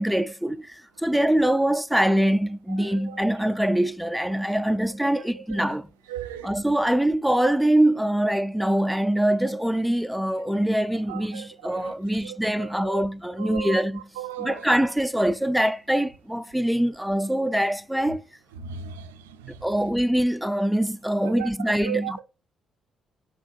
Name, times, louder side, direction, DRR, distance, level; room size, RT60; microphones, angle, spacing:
voice 1, 0.0-5.9 6.4-14.0 14.4-18.2 19.6-22.2, right 1 dB, 5° right, 0.3 m, -24 dB
voice 2, 6.1-6.5 11.1-11.5 11.7-11.9 12.2-13.0 13.4-13.8 14.2-14.6 18.6-19.1 21.4-21.5 21.8-22.2, right 9 dB, 85° right, 0.3 m, -35 dB
3.9 x 2.4 x 3.1 m
hypercardioid pair, 45°, 0 cm